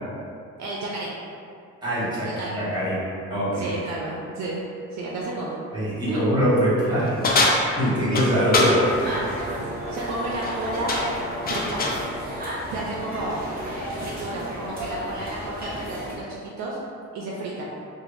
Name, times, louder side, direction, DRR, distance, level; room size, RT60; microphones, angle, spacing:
voice 1, 0.6-1.1 2.2-2.6 3.5-4.6 4.9-5.6 6.1-6.2 9.9-11.0 11.5-11.8 12.7-13.5 14.0-16.8 17.1-17.7, right 2 dB, 65° right, -4 dB, 0.5 m, -31 dB
voice 2, 1.8-2.9 3.3-3.7 5.7-7.3 7.6-9.6, equal, 15° right, -10 dB, 1.4 m, -23 dB
sound 1, 7.2-8.8 10.2-10.6 10.9-12.0, left 2 dB, 30° left, 0.4 m, -23 dB
sound 2, 8.5-12.4, equal, 15° left, 0.8 m, -37 dB
sound 3, 8.8-16.1, equal, 30° right, 0.8 m, -33 dB
3.2 x 2.1 x 2.5 m, 2.4 s
cardioid pair, 90°, 30 cm